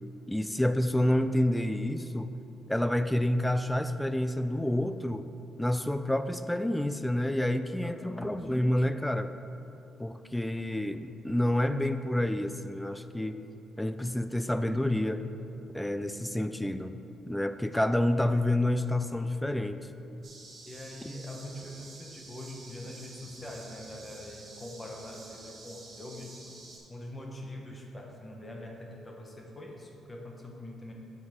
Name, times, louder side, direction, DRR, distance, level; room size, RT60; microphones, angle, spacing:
voice 1, 0.3-2.3 2.7-5.3 5.6-9.3 10.0-13.4 13.8-15.2 15.7-17.0 17.3-19.9, left 1 dB, 5° left, 10 dB, 0.4 m, -28 dB
voice 2, 7.8-8.5 20.7-26.5 26.9-30.9, left 1 dB, 25° left, 0 dB, 1.1 m, -43 dB
sound 1, 20.2-26.8, right 3 dB, 55° right, 1.9 m, -49 dB
8.0 x 7.7 x 3.7 m, 2.8 s
cardioid pair, 90°, 0 cm